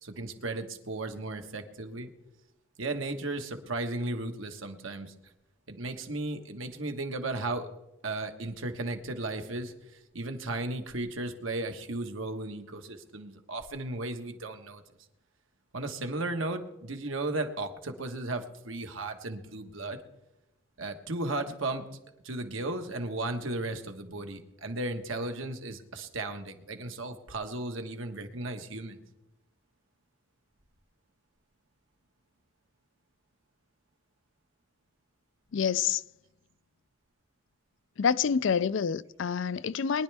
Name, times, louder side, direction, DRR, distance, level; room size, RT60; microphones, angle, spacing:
voice 1, 0.0-2.1 2.8-5.1 5.7-7.7 8.0-14.8 15.7-20.0 20.8-21.9 22.2-29.0, right 2 dB, 85° right, 1.4 m, -35 dB
voice 2, 35.5-36.0 38.0-40.0, left 7 dB, 70° left, 0.4 m, -27 dB
23.0 x 10.5 x 3.4 m
head